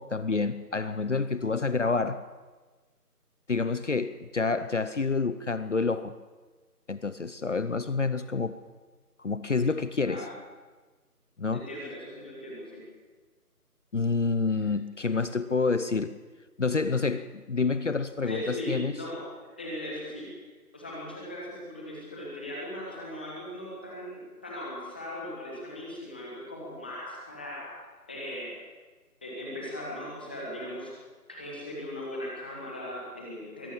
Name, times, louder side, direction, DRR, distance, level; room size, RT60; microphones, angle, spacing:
voice 1, 0.0-2.2 3.5-6.1 6.9-8.6 9.2-10.3 11.4-11.7 13.9-16.1 16.6-18.9, left 4 dB, 50° left, 13 dB, 0.9 m, -28 dB
voice 2, 11.5-12.8 18.3-20.3 20.7-27.7 28.1-28.5 29.2-30.9 31.3-33.7, left 1 dB, 5° left, -4 dB, 1.3 m, -38 dB
22.5 x 17.5 x 7.3 m, 1.3 s
figure-of-eight pair, 165°, 46 cm